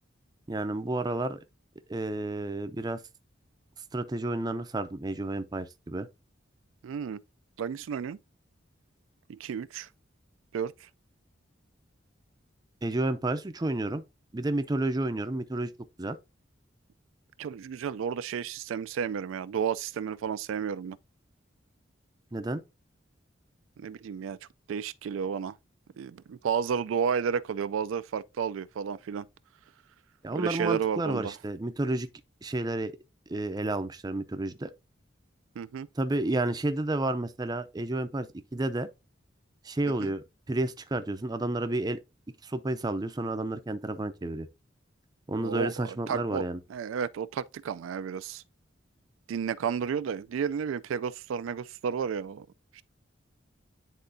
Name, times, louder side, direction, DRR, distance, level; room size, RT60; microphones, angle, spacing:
voice 1, 0.5-1.4 1.9-3.0 3.9-6.1 12.8-14.0 14.3-15.7 16.0-16.2 22.3-22.6 30.2-32.1 32.4-33.0 33.3-34.7 36.0-38.3 38.5-38.9 39.6-42.0 42.4-44.5 45.3-46.6, right 2 dB, 20° right, 0.4 m, -31 dB
voice 2, 6.8-7.2 7.6-8.2 9.3-9.9 10.5-10.9 17.4-21.0 23.8-24.4 24.7-25.6 26.0-29.3 30.3-31.3 35.6-35.9 40.0-40.1 45.4-46.4 46.7-48.4 49.3-52.5 52.7-52.8, right 7 dB, 90° right, 0.3 m, -32 dB
9.9 x 3.7 x 2.6 m
head